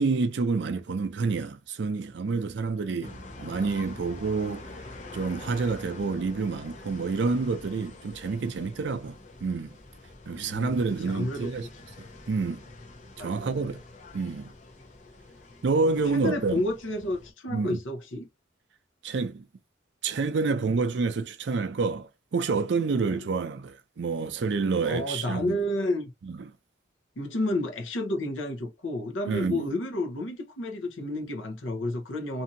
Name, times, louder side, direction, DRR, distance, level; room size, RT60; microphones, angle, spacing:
voice 1, 0.0-4.6 5.1-9.7 10.3-11.7 12.3-12.6 13.2-13.8 14.1-14.5 15.6-16.6 17.5-17.8 19.0-19.5 20.0-25.6 26.2-26.5 29.3-29.7, right 4 dB, 65° right, 0.4 m, -28 dB
sound 1, 3.0-17.3, left 2 dB, 40° left, 0.6 m, -46 dB
voice 2, 10.3-10.8 11.0-11.5 13.2-13.5 15.9-18.3 23.1-23.2 24.8-26.1 27.2-32.4, left 1 dB, 85° left, 0.8 m, -31 dB
2.7 x 2.6 x 2.6 m
head